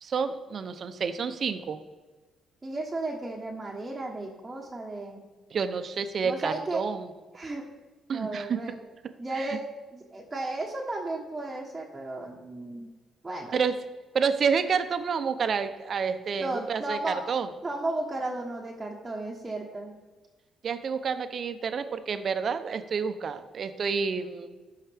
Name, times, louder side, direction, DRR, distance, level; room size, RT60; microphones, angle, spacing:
voice 1, 0.0-1.8 5.5-7.1 8.1-8.6 9.4-9.6 13.5-13.7 14.1-17.5 20.6-24.6, right 6 dB, 50° right, 10 dB, 0.7 m, -29 dB
voice 2, 2.6-5.3 6.2-6.8 7.3-7.6 8.1-8.8 9.2-9.6 9.9-12.9 13.2-13.6 16.4-17.2 17.6-19.9, right 2 dB, 20° right, -4 dB, 1.1 m, -34 dB
13.0 x 5.6 x 3.5 m, 1.3 s
cardioid pair, 90°, 0 cm